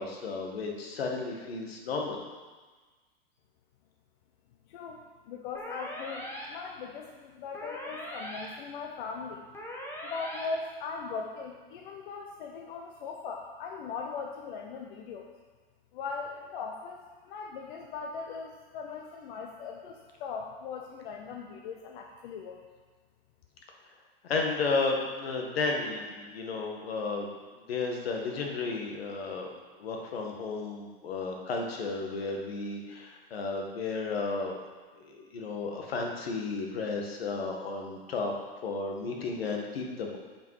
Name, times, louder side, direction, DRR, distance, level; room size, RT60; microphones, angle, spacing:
voice 1, 0.0-2.2 24.2-27.3 27.7-29.5 29.8-34.6 35.0-38.3 38.6-40.2, left 3 dB, 85° left, 1 dB, 1.7 m, -33 dB
voice 2, 4.7-9.5 10.0-15.3 15.9-22.6, left 5 dB, 60° left, 2 dB, 0.9 m, -39 dB
sound 1, 5.5-6.4 7.5-8.4 9.5-10.4, equal, 10° left, 1.3 m, -40 dB
9.1 x 5.3 x 4.8 m, 1.4 s
hypercardioid pair, 135°, 30 cm